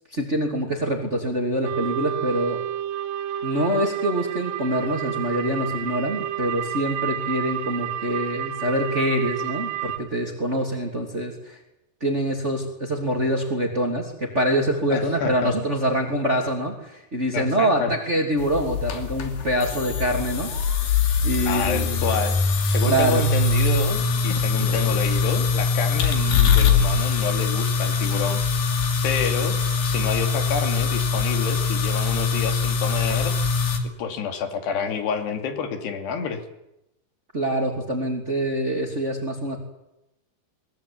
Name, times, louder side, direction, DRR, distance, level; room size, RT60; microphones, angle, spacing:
voice 1, 0.1-2.6 3.4-11.6 12.0-20.9 21.2-22.0 22.9-23.3 37.3-39.6, right 1 dB, 20° right, 2 dB, 2.7 m, -25 dB
sound 1, 1.6-10.0, right 10 dB, 80° right, 3.5 m, -30 dB
voice 2, 14.9-15.5 17.3-17.9 21.5-22.4 22.6-28.8 29.0-33.3 34.0-36.4, left 6 dB, 85° left, 6 dB, 4.7 m, -28 dB
sound 2, 18.4-33.8, left 4 dB, 60° left, 4.1 m, -22 dB
22.0 x 22.0 x 8.8 m, 0.89 s
omnidirectional pair, 4.7 m